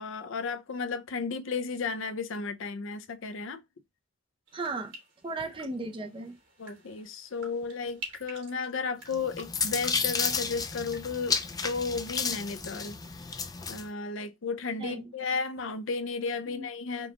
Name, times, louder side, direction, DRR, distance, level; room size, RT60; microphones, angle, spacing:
voice 1, 0.0-3.6 6.6-13.0 13.3-13.4 13.7-17.1, left 4 dB, 65° left, 0.5 m, -34 dB
voice 2, 4.5-4.9 5.2-6.4 14.8-15.1 16.5-16.7, right 3 dB, 25° right, 0.6 m, -36 dB
sound 1, 4.5-12.4 12.7-13.2, right 2 dB, 60° right, 2.9 m, -49 dB
sound 2, 9.1-13.9, left 5 dB, 20° left, 0.4 m, -32 dB
5.2 x 2.4 x 2.8 m
head